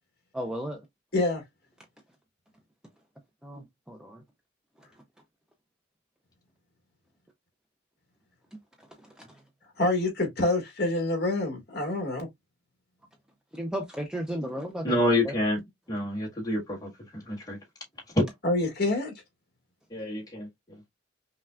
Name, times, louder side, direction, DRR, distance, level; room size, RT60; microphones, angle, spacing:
voice 1, 0.3-0.8 3.4-4.2 9.2-9.3 13.5-15.3, equal, 5° right, 0.5 m, -34 dB
voice 2, 9.8-12.3 18.4-19.1, left 2 dB, 55° left, 1.7 m, -26 dB
voice 3, 14.8-17.6 19.9-20.5, left 1 dB, 20° left, 1.6 m, -28 dB
5.5 x 2.3 x 2.3 m
head